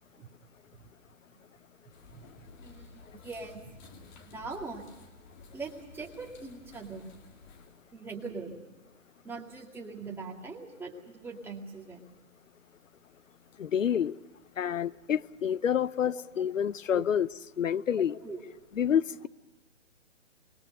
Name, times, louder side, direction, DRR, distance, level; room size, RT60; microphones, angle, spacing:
sound 1, 1.9-7.8, left 4 dB, 35° left, 2.7 m, -54 dB
voice 1, 2.1-3.8 4.2-4.9 5.5-7.1 7.9-8.7 9.2-12.0 16.1-16.2 16.9-17.0 18.2-18.4, right 4 dB, 5° right, -1 dB, 2.2 m, -42 dB
voice 2, 13.6-14.2 14.6-17.3 17.6-18.2 18.8-19.3, left 8 dB, 80° left, 18 dB, 0.8 m, -28 dB
26.5 x 21.5 x 6.7 m, 1.2 s
hypercardioid pair, 145°, 38 cm